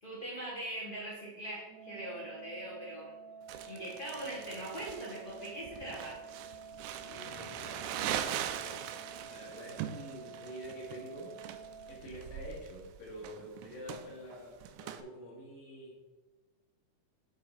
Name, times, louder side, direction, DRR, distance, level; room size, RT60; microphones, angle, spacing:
voice 1, 0.0-3.1 3.6-6.2, right 1 dB, 30° left, -7 dB, 0.9 m, -41 dB
Organ, 1.7-12.7, right 5 dB, 15° right, 1.1 m, -50 dB
Crumpling crinkling, 3.5-15.0, right 10 dB, 85° right, 1.8 m, -41 dB
voice 2, 6.9-7.9 8.5-8.8 9.2-11.4 11.9-16.1, equal, 65° left, -5 dB, 3.8 m, -47 dB
sound 1, 7.0-8.6, left 9 dB, 80° left, 2.0 m, -54 dB
9.4 x 4.2 x 4.1 m, 1.2 s
omnidirectional pair, 4.1 m